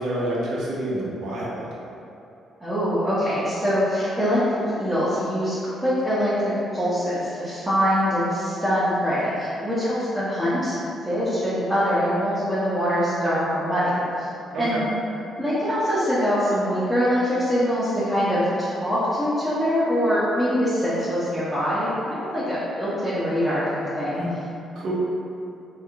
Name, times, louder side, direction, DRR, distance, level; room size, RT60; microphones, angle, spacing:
voice 1, 0.0-1.7 14.5-14.9 24.1-24.3 24.8-24.9, right 1 dB, 70° right, -5 dB, 0.8 m, -28 dB
voice 2, 2.6-4.4 4.8-10.8 11.0-14.3 14.6-14.9 15.4-24.2, equal, 10° right, -13 dB, 0.8 m, -23 dB
3.5 x 2.2 x 3.5 m, 2.6 s
cardioid pair, 90°, 0 cm